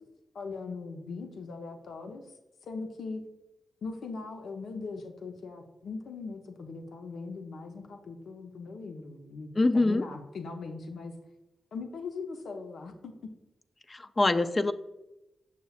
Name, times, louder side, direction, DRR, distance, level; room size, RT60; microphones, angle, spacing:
voice 1, 0.3-2.3 2.6-3.2 3.8-11.1 11.7-13.1, left 4 dB, 80° left, 5 dB, 0.7 m, -40 dB
voice 2, 9.6-10.1 13.9-14.7, left 2 dB, 35° left, 10 dB, 0.4 m, -24 dB
6.6 x 6.6 x 2.4 m, 0.95 s
supercardioid pair, 45°, 0 cm